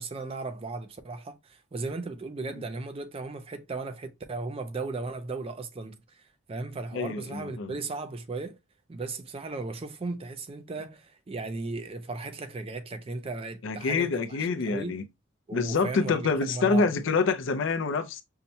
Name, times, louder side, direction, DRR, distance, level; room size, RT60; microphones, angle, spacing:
voice 1, 0.0-6.2 6.5-8.6 8.9-14.4 14.6-15.0 15.5-16.9, right 3 dB, 25° right, 0.4 m, -36 dB
voice 2, 6.9-7.8 13.6-15.0 15.5-18.2, left 4 dB, 60° left, 0.5 m, -27 dB
5.5 x 2.1 x 2.7 m
head